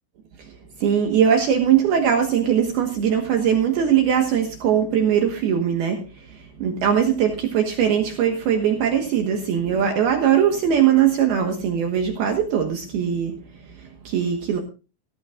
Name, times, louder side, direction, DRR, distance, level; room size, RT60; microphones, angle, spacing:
voice 1, 0.8-13.4 13.8-14.6, right 8 dB, 65° right, 3.0 m, -20 dB
18.0 x 15.0 x 2.4 m
omnidirectional pair, 5.3 m